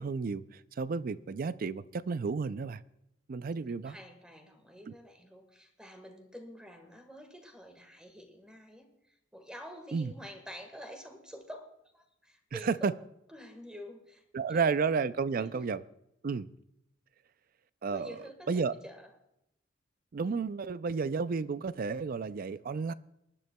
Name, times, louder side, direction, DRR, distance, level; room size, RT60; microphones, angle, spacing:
voice 1, 0.0-2.8 3.3-4.0 4.9-5.0 9.9-10.1 12.5-12.9 14.3-15.8 16.2-16.5 17.8-18.2 18.5-18.7 20.1-22.9, right 5 dB, 50° right, 0.4 m, -32 dB
voice 2, 3.8-11.7 11.9-12.9 13.3-14.7 15.3-15.6 17.9-19.1, equal, 5° right, 1.5 m, -48 dB
23.5 x 11.0 x 2.2 m
head